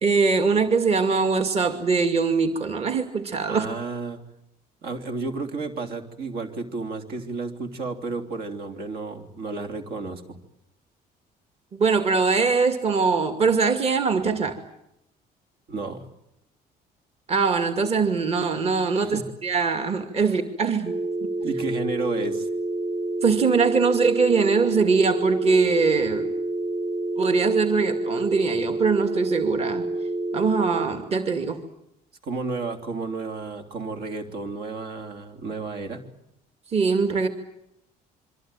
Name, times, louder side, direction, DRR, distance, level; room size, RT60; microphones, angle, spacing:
voice 1, 0.0-3.7 11.7-14.6 17.3-20.9 23.2-26.3 27.2-29.9 30.3-31.6 36.7-37.3, right 4 dB, 35° right, 6 dB, 2.4 m, -22 dB
voice 2, 3.5-4.2 4.8-10.4 15.7-16.1 18.9-19.3 21.4-22.5 32.2-36.1, right 3 dB, 70° right, 5 dB, 3.4 m, -32 dB
sound 1, 20.9-30.9, right 2 dB, 5° left, 1.0 m, -28 dB
26.0 x 24.0 x 9.1 m, 0.83 s
cardioid pair, 110°, 17 cm